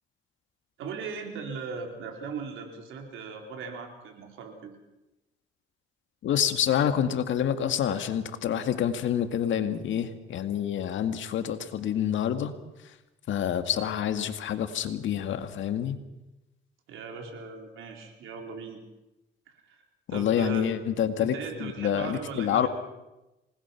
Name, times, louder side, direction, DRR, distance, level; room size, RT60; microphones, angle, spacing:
voice 1, 0.8-4.7 16.9-18.8 19.6-19.8 20.1-20.7 21.2-22.7, right 5 dB, 85° right, 3 dB, 4.5 m, -38 dB
voice 2, 6.2-12.5 13.3-16.0 20.1-21.3 21.6-22.7, left 9 dB, 75° left, 9 dB, 2.0 m, -27 dB
27.0 x 20.0 x 6.0 m, 0.99 s
cardioid pair, 90°, 20 cm